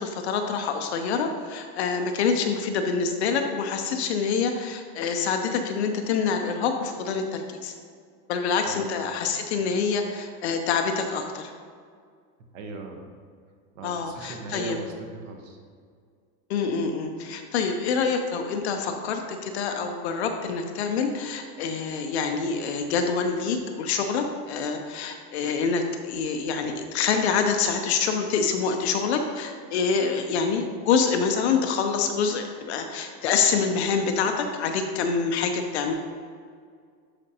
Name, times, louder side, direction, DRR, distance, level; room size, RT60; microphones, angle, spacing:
voice 1, 0.0-7.7 8.3-11.5 13.8-14.8 16.5-35.9, left 5 dB, 45° left, 5 dB, 0.5 m, -26 dB
voice 2, 12.5-13.0 13.7-15.6, right 3 dB, 50° right, 3 dB, 1.1 m, -38 dB
12.0 x 5.0 x 2.8 m, 2.1 s
supercardioid pair, 175°, 48 cm